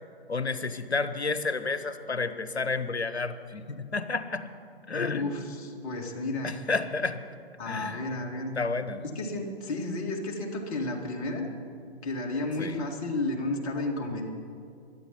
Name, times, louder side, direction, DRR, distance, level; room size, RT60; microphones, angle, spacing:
voice 1, 0.3-4.5 4.9-5.3 6.4-7.2 7.6-8.0 8.6-9.0 12.6-12.8, left 4 dB, 80° left, 11 dB, 1.1 m, -30 dB
voice 2, 5.1-6.5 7.6-8.6 9.0-11.5 12.0-14.3, left 2 dB, 35° left, 1 dB, 2.1 m, -32 dB
13.5 x 10.5 x 8.4 m, 2.4 s
figure-of-eight pair, 130°, 32 cm